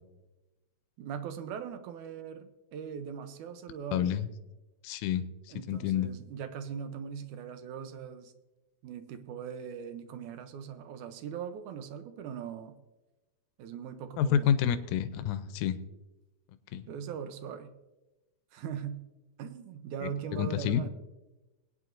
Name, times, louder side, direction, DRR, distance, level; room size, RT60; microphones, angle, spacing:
voice 1, 1.0-4.2 5.5-8.3 8.8-12.8 13.6-14.5 16.9-17.7 18.5-19.0 19.4-20.9, right 7 dB, 80° right, 9 dB, 2.3 m, -40 dB
voice 2, 3.9-4.3 4.8-5.3 5.7-6.1 14.2-15.8 16.7-16.9 20.0-20.8, left 9 dB, 85° left, 11 dB, 2.1 m, -28 dB
21.5 x 9.1 x 2.6 m, 1.1 s
omnidirectional pair, 3.5 m